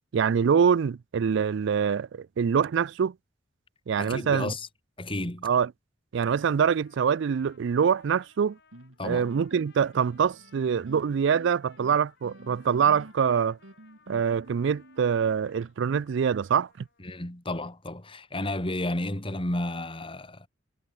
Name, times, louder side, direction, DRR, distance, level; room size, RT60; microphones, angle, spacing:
voice 1, 0.1-3.1 3.9-4.5 5.4-5.7 6.1-8.6 9.0-13.6 14.1-16.7, right 7 dB, 65° right, 0.4 m, -24 dB
voice 2, 4.0-4.7 5.0-5.5 9.0-9.3 17.0-20.5, left 1 dB, 25° left, 2.6 m, -32 dB
Trumpet, 6.3-17.1, left 5 dB, 60° left, 7.4 m, -61 dB
sound 1, 8.7-15.7, right 1 dB, 90° right, 3.2 m, -49 dB
head